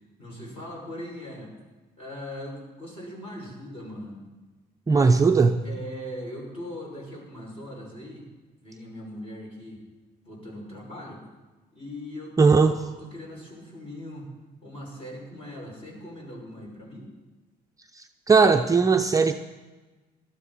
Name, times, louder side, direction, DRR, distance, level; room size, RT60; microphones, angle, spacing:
voice 1, 0.2-1.5 2.0-4.2 4.9-5.3 5.6-8.3 8.6-9.8 10.2-11.2 11.7-14.3 14.6-17.1, left 1 dB, 35° left, -2 dB, 5.9 m, -40 dB
voice 2, 4.9-5.6 12.4-12.7 18.0-19.3, right 4 dB, 20° right, 5 dB, 0.5 m, -19 dB
17.0 x 12.5 x 4.2 m, 1.2 s
cardioid pair, 110°, 17 cm